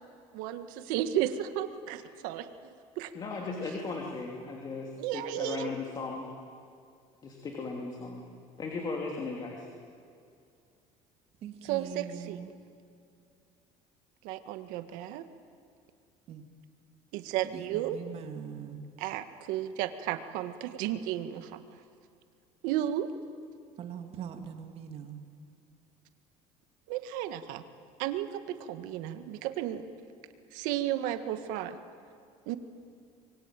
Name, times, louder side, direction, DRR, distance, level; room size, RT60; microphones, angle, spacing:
voice 1, 0.3-3.1 5.0-5.7 11.6-12.4 14.2-15.2 17.1-18.0 19.0-21.5 22.6-23.1 26.9-27.6 28.0-29.8 30.5-31.8 32.4-32.6, right 12 dB, 80° right, 1.8 m, -33 dB
voice 2, 3.1-6.3 7.2-8.3 8.6-9.7, left 3 dB, 30° left, 3.0 m, -37 dB
voice 3, 11.4-12.6 16.3-16.4 17.5-18.8 23.8-25.2, right 8 dB, 45° right, 2.6 m, -42 dB
26.0 x 23.0 x 9.1 m
cardioid pair, 145°, 14 cm